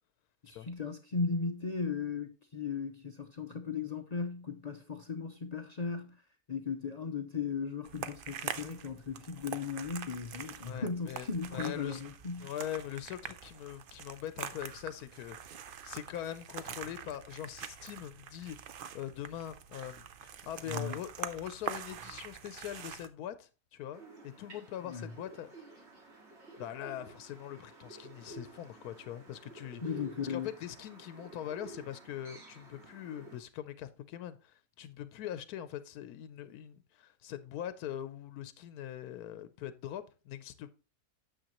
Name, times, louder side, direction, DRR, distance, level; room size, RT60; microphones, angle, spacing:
voice 1, 0.4-6.2 6.5-12.5 20.7-21.0 24.8-25.1 29.8-30.5, left 5 dB, 50° left, 0.5 m, -37 dB
sound 1, 7.9-23.1, right 8 dB, 65° right, 0.5 m, -44 dB
voice 2, 10.6-11.3 11.5-12.0 12.4-18.6 18.9-25.5 26.6-29.8 30.3-40.7, left 11 dB, 90° left, 1.1 m, -42 dB
sound 2, 23.9-33.4, right 2 dB, 50° right, 2.1 m, -52 dB
9.0 x 7.0 x 2.9 m
omnidirectional pair, 1.5 m